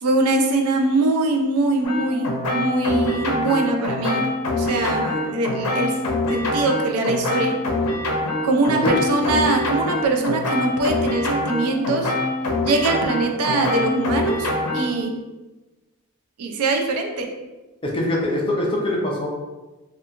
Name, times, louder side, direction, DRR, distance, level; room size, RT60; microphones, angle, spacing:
voice 1, 0.0-4.3 4.6-6.0 6.3-7.6 8.4-12.1 12.6-15.2 16.4-17.3, right 2 dB, 80° right, 3 dB, 0.4 m, -22 dB
sound 1, 1.8-15.0, left 2 dB, 85° left, 0.5 m, -24 dB
voice 2, 17.8-19.3, left 1 dB, 25° left, -3 dB, 0.5 m, -23 dB
2.8 x 2.3 x 2.4 m, 1.1 s
head